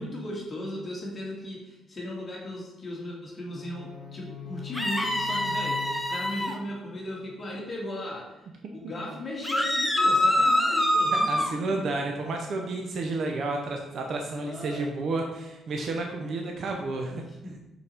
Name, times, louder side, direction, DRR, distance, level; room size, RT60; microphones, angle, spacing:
voice 1, 0.0-8.4 8.7-12.0 14.3-14.9 16.2-16.5 17.2-17.6, left 1 dB, 30° left, -3 dB, 1.5 m, -37 dB
sound 1, 3.5-7.5, left 7 dB, 65° left, 1.3 m, -43 dB
sound 2, 4.7-6.5 9.4-11.5, left 1 dB, 5° left, 0.6 m, -24 dB
voice 2, 11.1-17.2, right 3 dB, 55° right, 2 dB, 0.6 m, -31 dB
5.4 x 4.1 x 4.3 m, 0.95 s
cardioid pair, 125°, 0 cm